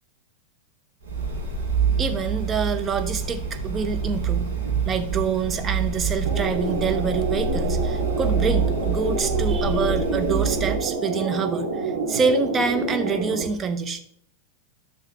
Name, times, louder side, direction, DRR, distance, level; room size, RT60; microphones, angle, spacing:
sound 1, 1.0-10.9, right 5 dB, 80° right, 2.8 m, -26 dB
voice 1, 2.0-4.5 4.8-14.0, right 5 dB, 20° right, 7 dB, 0.9 m, -26 dB
sound 2, 6.3-13.4, right 3 dB, 55° right, 3.1 m, -28 dB
11.5 x 6.1 x 3.4 m, 0.65 s
figure-of-eight pair, 90°, 0 cm